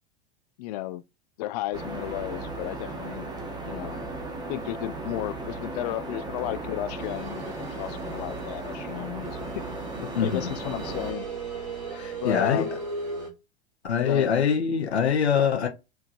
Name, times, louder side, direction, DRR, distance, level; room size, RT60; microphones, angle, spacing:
voice 1, 0.6-1.0 1.4-3.3 3.6-4.0 4.5-9.6 10.0-11.3 12.2-12.7 14.0-14.3, left 16 dB, 40° left, 0.5 m, -33 dB
sound 1, 1.7-11.1, right 2 dB, 10° right, 0.9 m, -36 dB
sound 2, 7.0-13.3, right 3 dB, 55° right, 2.1 m, -38 dB
voice 2, 10.1-10.5 11.9-12.8 13.8-15.7, left 7 dB, 75° left, 0.9 m, -24 dB
4.5 x 3.5 x 2.6 m
figure-of-eight pair, 90°, 33 cm